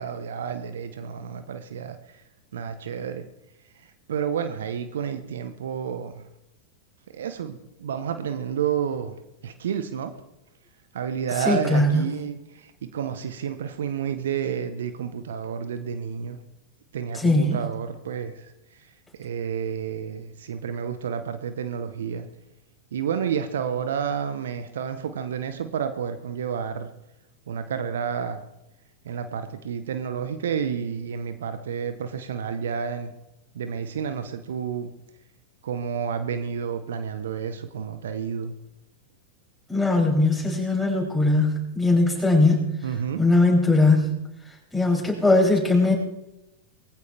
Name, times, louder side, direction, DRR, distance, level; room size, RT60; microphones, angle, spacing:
voice 1, 0.0-2.2 2.5-3.2 4.1-6.3 7.1-9.2 9.4-10.1 10.9-16.4 16.9-18.5 19.2-22.3 22.9-26.9 27.5-28.4 29.0-33.1 33.5-34.9 35.6-38.5 42.8-43.2, right 7 dB, 70° right, 10 dB, 1.2 m, -30 dB
voice 2, 11.4-12.0 17.1-17.6 39.7-42.7 43.2-44.1 44.7-45.9, left 2 dB, 5° left, -3 dB, 7.8 m, -20 dB
23.0 x 15.0 x 3.6 m, 0.92 s
figure-of-eight pair, 90°, 0 cm